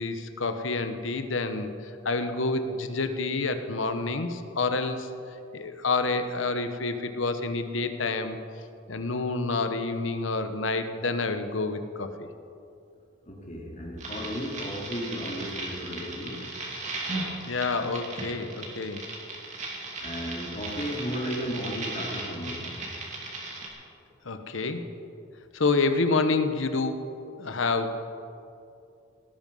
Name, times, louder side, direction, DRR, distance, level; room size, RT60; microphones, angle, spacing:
voice 1, 0.0-5.1 5.5-8.4 8.9-12.3 17.4-19.0 24.2-24.9 25.5-27.1 27.4-28.0, left 3 dB, 75° left, 8 dB, 1.1 m, -28 dB
voice 2, 13.2-16.4 17.1-17.2 20.0-22.7, equal, 35° left, -2 dB, 3.0 m, -34 dB
sound 1, 14.0-23.7, right 2 dB, 35° right, 2.6 m, -36 dB
18.0 x 12.5 x 5.5 m, 2.5 s
head